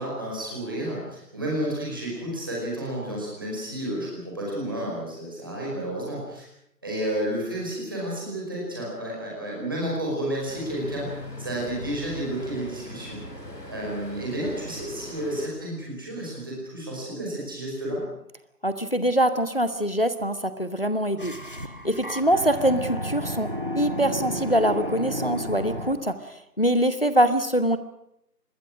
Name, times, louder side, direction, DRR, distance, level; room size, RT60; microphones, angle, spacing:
voice 1, 0.0-6.5 6.8-13.2 13.7-18.0, right 1 dB, 15° right, -4 dB, 5.2 m, -31 dB
Traffic noise roadway noise, 10.5-15.5, left 2 dB, 80° left, 7.0 m, -40 dB
voice 2, 18.6-21.3 21.8-27.8, right 1 dB, 35° left, 11 dB, 1.2 m, -24 dB
sound 1, 21.2-26.1, equal, 35° right, 1.2 m, -32 dB
27.5 x 21.5 x 6.4 m, 0.79 s
figure-of-eight pair, 175°, 49 cm